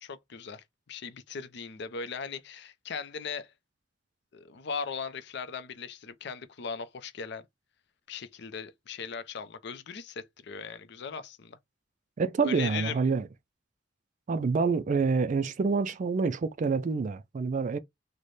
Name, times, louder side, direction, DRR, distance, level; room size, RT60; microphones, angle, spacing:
voice 1, 0.0-3.5 4.3-7.4 8.1-11.6 12.4-13.0, left 5 dB, 60° left, 0.5 m, -38 dB
voice 2, 12.2-13.3 14.3-17.8, right 4 dB, 40° right, 0.3 m, -27 dB
3.2 x 2.1 x 3.9 m
head